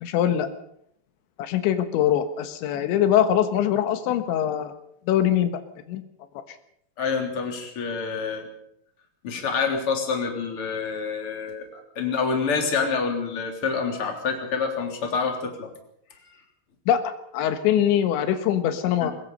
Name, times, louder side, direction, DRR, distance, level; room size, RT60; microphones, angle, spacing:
voice 1, 0.0-0.5 1.4-4.7 5.1-5.6 5.9-6.0 6.5-6.6 16.9-17.0 17.3-19.1, left 10 dB, 90° left, 8 dB, 3.7 m, -22 dB
voice 2, 7.0-8.5 9.2-15.7 19.0-19.1, left 5 dB, 30° left, 2 dB, 3.8 m, -27 dB
22.5 x 21.0 x 5.5 m, 0.71 s
omnidirectional pair, 5.1 m